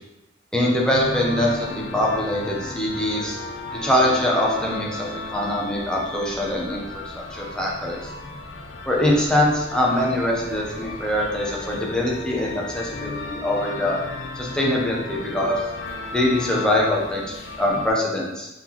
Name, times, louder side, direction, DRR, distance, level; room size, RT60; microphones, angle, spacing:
voice 1, 0.5-3.4 3.7-8.0 8.9-14.0 14.4-15.6 16.1-17.2 17.6-18.5, left 1 dB, 5° left, -3 dB, 0.8 m, -23 dB
sound 1, 0.9-17.9, left 3 dB, 75° left, 0.5 m, -35 dB
4.0 x 3.6 x 3.0 m, 0.91 s
head